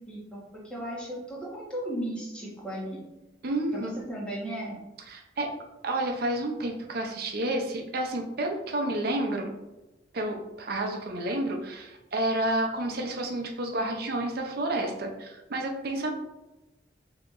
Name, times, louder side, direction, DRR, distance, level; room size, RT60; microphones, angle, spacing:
voice 1, 0.0-3.0 3.7-4.8, right 1 dB, 5° left, -6 dB, 1.3 m, -36 dB
voice 2, 3.4-3.9 5.1-5.5 5.8-9.5 10.1-16.1, right 1 dB, 60° right, 3 dB, 0.6 m, -30 dB
5.6 x 2.9 x 2.5 m, 1.0 s
head